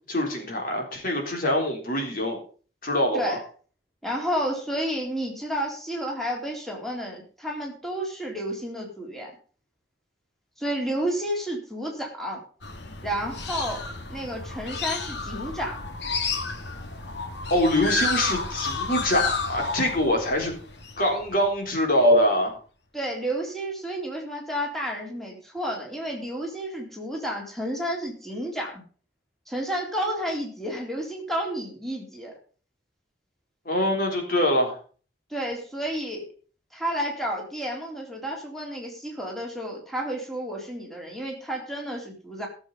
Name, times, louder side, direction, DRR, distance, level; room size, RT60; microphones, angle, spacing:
voice 1, 0.1-2.4 2.8-3.4 17.5-20.5 21.0-22.6 33.7-34.8, left 1 dB, 55° left, 1 dB, 3.8 m, -24 dB
voice 2, 4.0-9.3 10.6-12.4 13.0-15.8 22.9-28.8 29.5-32.3 35.3-36.3 36.7-42.5, equal, ahead, -1 dB, 3.7 m, -31 dB
sound 1, 12.6-21.7, left 4 dB, 80° left, 2.0 m, -31 dB
16.5 x 7.6 x 5.4 m, 0.40 s
head